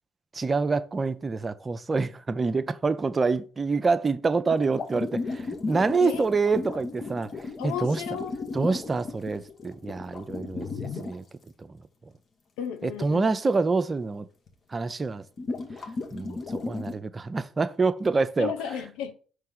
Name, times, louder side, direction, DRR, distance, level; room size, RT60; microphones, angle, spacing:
voice 1, 0.3-8.0 8.5-10.7 11.0-11.2 11.6-11.8 12.8-14.3 14.7-15.2 16.1-18.5, right 4 dB, 30° right, 0.5 m, -26 dB
sound 1, 4.5-11.2 14.5-14.6 15.4-16.9, left 3 dB, 45° left, 1.2 m, -34 dB
voice 2, 7.6-8.8 12.6-13.3 18.4-19.1, left 8 dB, 75° left, 0.6 m, -34 dB
5.5 x 3.2 x 5.4 m
hypercardioid pair, 50°, 0 cm